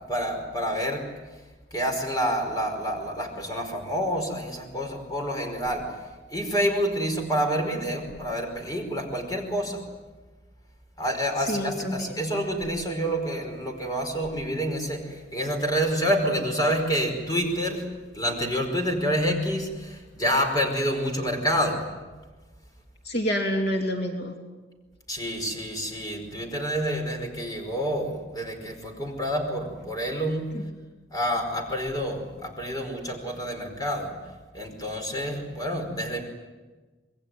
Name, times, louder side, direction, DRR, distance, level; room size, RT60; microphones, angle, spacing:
voice 1, 0.1-1.1 1.7-6.0 6.3-9.8 11.0-17.8 18.1-21.8 25.1-30.5 31.1-34.1 34.5-36.2, equal, 20° left, 3 dB, 5.0 m, -28 dB
voice 2, 11.5-12.1 23.0-24.3 30.5-30.6, equal, 65° left, 2 dB, 3.0 m, -27 dB
27.0 x 21.0 x 9.5 m, 1.3 s
head